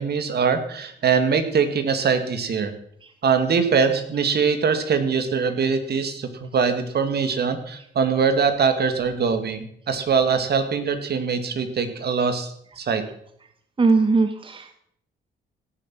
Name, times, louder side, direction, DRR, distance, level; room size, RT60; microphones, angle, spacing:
voice 1, 0.0-2.7 3.2-13.0, right 5 dB, 55° right, 8 dB, 2.0 m, -22 dB
voice 2, 13.8-14.8, right 3 dB, 25° right, 8 dB, 1.1 m, -20 dB
17.0 x 7.3 x 6.0 m, 0.68 s
cardioid pair, 90°, 20 cm